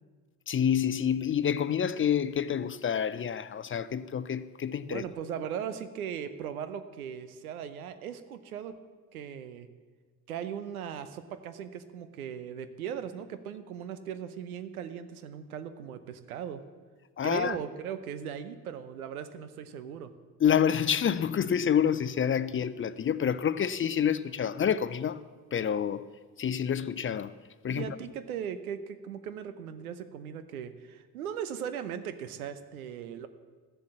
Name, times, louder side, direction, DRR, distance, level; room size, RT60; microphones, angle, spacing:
voice 1, 0.5-5.0 17.2-17.6 20.4-26.1 26.4-27.3 27.6-28.0, left 8 dB, 30° left, 0.5 m, -28 dB
voice 2, 4.9-8.7 9.1-9.7 10.3-16.6 17.2-20.1 27.7-33.3, right 8 dB, 85° right, 0.7 m, -38 dB
13.0 x 7.5 x 7.3 m
figure-of-eight pair, 40°, 42 cm